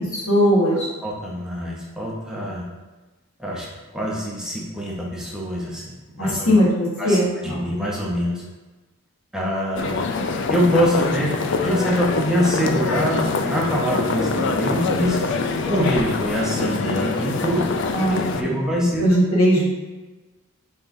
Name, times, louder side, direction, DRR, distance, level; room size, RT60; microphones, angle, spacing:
voice 1, 0.1-0.9 6.2-7.6 17.9-18.6 19.0-19.6, equal, 85° left, -5 dB, 1.4 m, -19 dB
voice 2, 1.0-2.7 3.4-3.7 3.9-6.6 7.0-8.4 9.3-10.0 10.5-15.4 15.7-17.7 18.1-19.2, equal, 5° right, -4 dB, 0.6 m, -24 dB
sound 1, 9.8-18.4, left 4 dB, 55° left, 0.3 m, -24 dB
5.5 x 3.4 x 2.6 m, 1.2 s
head